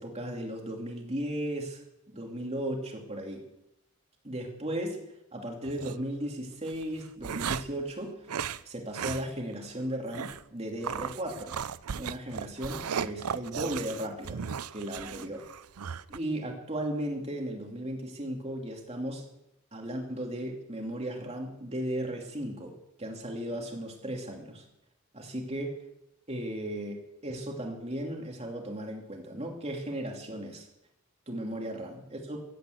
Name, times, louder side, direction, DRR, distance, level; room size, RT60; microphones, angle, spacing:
voice 1, 0.0-1.8 2.1-3.4 4.2-5.0 5.3-8.1 8.6-11.6 11.9-14.4 14.7-15.5 16.1-19.3 19.7-22.7 23.0-24.6 25.1-25.8 26.3-30.7 31.3-32.4, right 1 dB, 30° right, 1 dB, 2.9 m, -36 dB
sound 1, 5.6-6.0 6.7-7.8 8.3-8.6 8.9-9.2 9.5-9.6 10.1-10.4 10.8-16.2, right 7 dB, 85° right, 0.6 m, -36 dB
15.5 x 10.0 x 8.1 m, 0.83 s
head